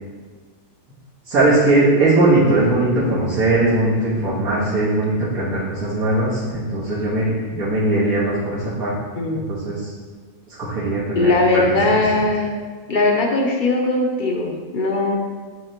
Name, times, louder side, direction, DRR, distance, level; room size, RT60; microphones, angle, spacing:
voice 1, 1.3-8.9 9.3-9.9 10.6-11.7, right 2 dB, 85° right, -12 dB, 2.0 m, -19 dB
voice 2, 9.2-9.5 11.2-12.5 12.9-15.1, left 2 dB, 50° left, 0 dB, 0.6 m, -19 dB
9.9 x 3.3 x 3.0 m, 1.5 s
omnidirectional pair, 1.5 m